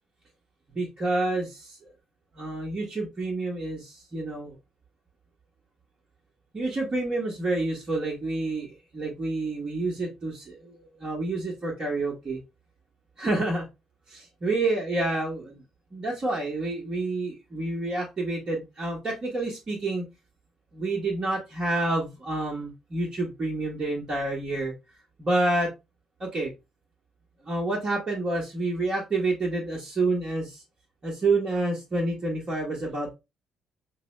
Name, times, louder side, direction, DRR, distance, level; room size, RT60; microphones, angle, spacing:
voice 1, 0.7-1.9 2.3-4.6 6.5-12.4 13.2-13.6 14.1-15.6 15.9-20.0 20.7-24.7 25.2-25.7 26.2-26.5 27.4-30.6 31.0-33.1, right 2 dB, 35° right, -5 dB, 1.2 m, -28 dB
5.2 x 2.1 x 3.1 m, 0.24 s
figure-of-eight pair, 45°, 2 cm